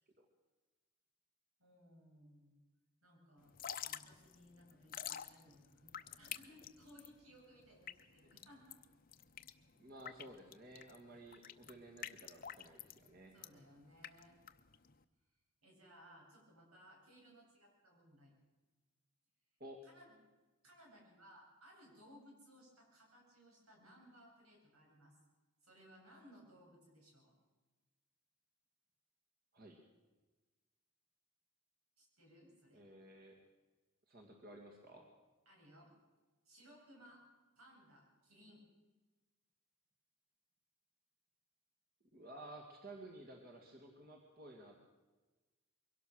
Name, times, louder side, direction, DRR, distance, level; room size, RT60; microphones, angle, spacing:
voice 1, 1.6-2.6 3.0-8.8 13.3-14.4 15.6-18.3 19.8-20.1 20.6-25.1 25.6-27.3 32.0-32.8 35.5-35.9 36.4-37.2 37.6-38.6, equal, 85° right, -1 dB, 8.0 m, -62 dB
Drip / Trickle dribble, 3.4-15.0, left 9 dB, 40° left, 0.7 m, -49 dB
voice 2, 9.8-13.3 19.6-19.8 29.5-29.8 32.7-33.4 34.1-35.1 42.1-44.8, right 1 dB, 40° right, 2 dB, 2.2 m, -54 dB
23.0 x 17.5 x 6.5 m, 1.2 s
head